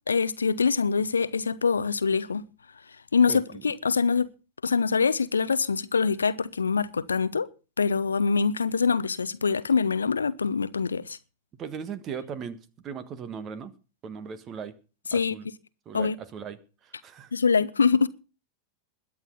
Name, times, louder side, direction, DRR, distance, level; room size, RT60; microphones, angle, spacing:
voice 1, 0.1-2.4 3.1-4.3 4.6-7.5 7.8-11.2 15.1-15.3 15.9-16.2 17.3-18.1, left 5 dB, 75° left, 0.7 m, -24 dB
voice 2, 3.3-3.6 11.6-13.7 14.0-14.8 15.1-15.5 15.8-17.3, right 6 dB, 30° right, 1.5 m, -38 dB
21.5 x 8.8 x 4.0 m
figure-of-eight pair, 90°, 0 cm